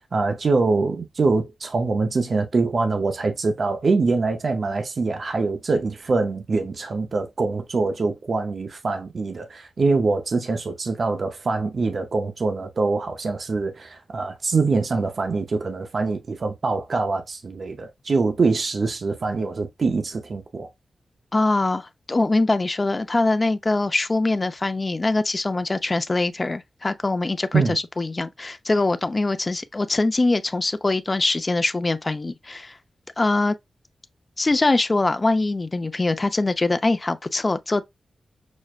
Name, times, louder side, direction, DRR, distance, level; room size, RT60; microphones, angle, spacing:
voice 1, 0.1-20.7 27.5-27.8, right 3 dB, 60° right, 0.6 m, -24 dB
voice 2, 21.3-32.8 33.2-33.6 34.4-37.8, left 2 dB, 35° left, 0.5 m, -23 dB
6.2 x 2.1 x 2.3 m
cardioid pair, 45°, 0 cm